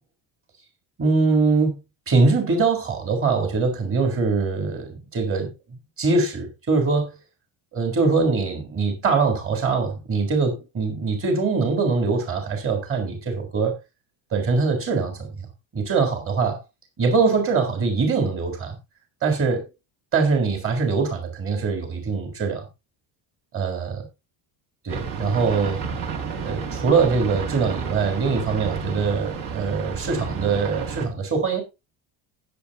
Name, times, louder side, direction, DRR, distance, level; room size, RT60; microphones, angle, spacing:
voice 1, 1.0-1.8 2.1-7.1 7.7-13.8 14.3-15.5 15.7-16.6 17.0-18.8 19.2-19.7 20.1-22.7 23.5-24.1 24.8-25.8 26.4-31.6, right 4 dB, 30° right, 3 dB, 3.8 m, -23 dB
sound 1, 24.9-31.1, right 5 dB, 45° right, 2.3 m, -31 dB
19.0 x 7.6 x 2.7 m, 0.25 s
cardioid pair, 170°, 45 cm